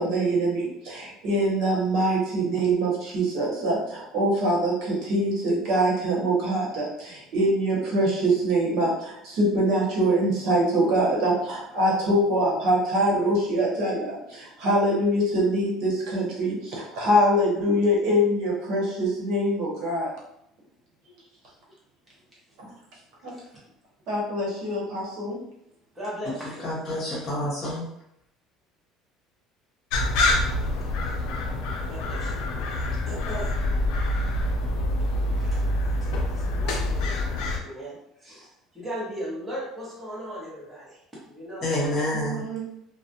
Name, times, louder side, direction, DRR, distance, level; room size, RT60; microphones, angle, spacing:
voice 1, 0.0-20.1 23.2-23.3 24.1-25.4 42.1-42.7, right 1 dB, 65° right, -3 dB, 0.9 m, -24 dB
voice 2, 25.9-26.6 31.0-31.2 31.9-33.6 35.3-35.6 36.0-41.0 41.3-41.8, equal, 10° right, -8 dB, 0.8 m, -38 dB
voice 3, 26.6-27.8 41.6-42.4, left 1 dB, 30° left, -6 dB, 1.0 m, -28 dB
sound 1, 29.9-37.6, left 1 dB, 75° left, 0.4 m, -26 dB
2.3 x 2.0 x 2.7 m, 0.78 s
cardioid pair, 140°, 0 cm